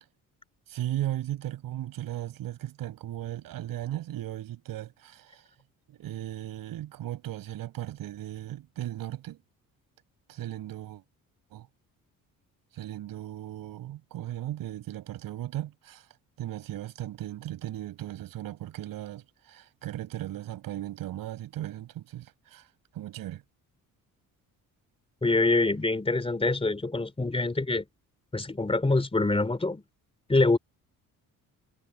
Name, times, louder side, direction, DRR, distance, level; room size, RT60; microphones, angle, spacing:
voice 1, 0.7-5.4 5.9-9.4 10.3-11.0 11.5-11.7 12.7-16.1 16.4-22.7 22.9-23.4, right 13 dB, 85° right, 6.3 m, -36 dB
voice 2, 25.2-27.8 28.3-29.8 30.3-30.6, left 2 dB, 15° left, 3.2 m, -25 dB
cardioid pair, 100°, 34 cm